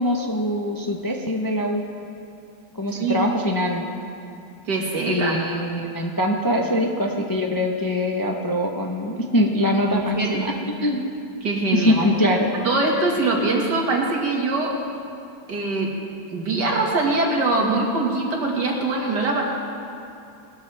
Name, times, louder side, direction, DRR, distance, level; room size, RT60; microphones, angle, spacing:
voice 1, 0.0-1.8 2.7-3.9 5.0-10.5 10.8-11.0 11.7-12.5, equal, 20° left, 1 dB, 0.6 m, -23 dB
voice 2, 4.7-5.3 9.8-10.4 11.4-12.1 12.5-14.7 15.5-15.9 16.3-19.4, right 2 dB, 85° right, -1 dB, 2.5 m, -23 dB
20.0 x 13.0 x 3.5 m, 2.6 s
omnidirectional pair, 1.8 m